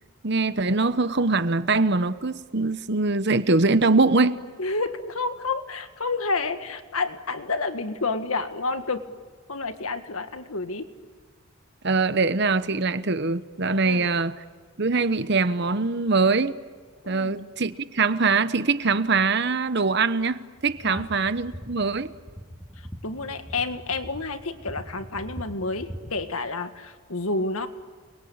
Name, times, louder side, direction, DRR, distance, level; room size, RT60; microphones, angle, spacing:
voice 1, 0.2-4.4 11.8-14.4 14.8-16.6 17.1-22.1, right 3 dB, 50° right, 13 dB, 1.0 m, -23 dB
voice 2, 4.6-9.1 9.5-10.9 13.8-14.1 17.0-17.4 20.8-21.1 23.0-27.7, left 3 dB, 85° left, 8 dB, 1.9 m, -29 dB
sound 1, 20.6-26.2, equal, ahead, 2.7 m, -41 dB
29.5 x 22.5 x 8.8 m, 1.5 s
head